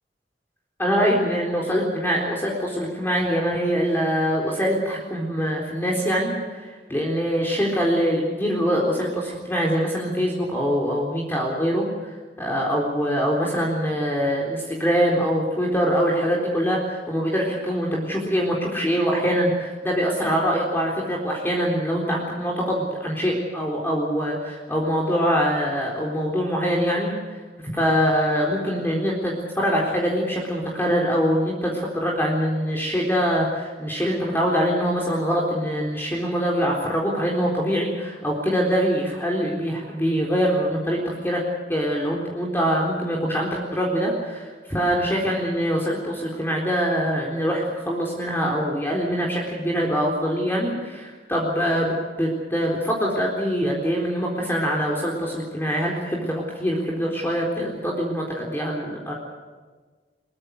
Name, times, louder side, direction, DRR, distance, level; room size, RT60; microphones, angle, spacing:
voice 1, 0.8-12.1 12.4-41.4 41.7-51.9 52.2-59.1, equal, 15° left, -2 dB, 4.0 m, -24 dB
23.0 x 22.5 x 6.6 m, 1.4 s
head